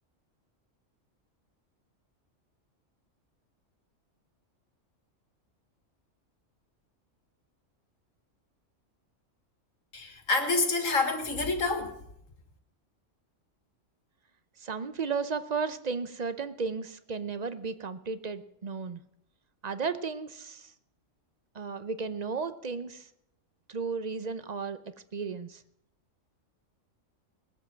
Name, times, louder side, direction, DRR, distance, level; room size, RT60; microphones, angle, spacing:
voice 1, 9.9-12.0, left 3 dB, 90° left, 5 dB, 2.3 m, -28 dB
voice 2, 14.6-19.0 19.6-20.7 21.5-23.1 23.7-24.8 25.1-25.6, right 5 dB, 40° right, 11 dB, 0.7 m, -34 dB
19.5 x 7.4 x 7.5 m, 0.75 s
omnidirectional pair, 1.3 m